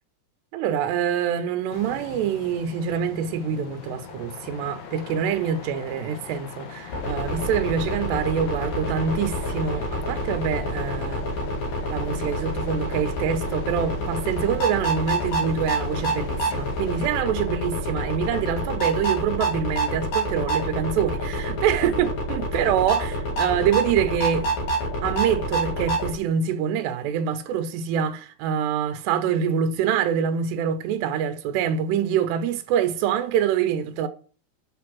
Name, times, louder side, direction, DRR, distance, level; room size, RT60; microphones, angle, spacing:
voice 1, 0.5-11.2 11.9-24.5 25.0-34.1, right 8 dB, 90° right, 3.0 m, -25 dB
sound 1, 1.7-17.1, left 7 dB, 75° left, 3.4 m, -42 dB
sound 2, 6.9-26.1, right 1 dB, 50° left, 3.1 m, -27 dB
6.8 x 6.8 x 6.0 m
omnidirectional pair, 4.8 m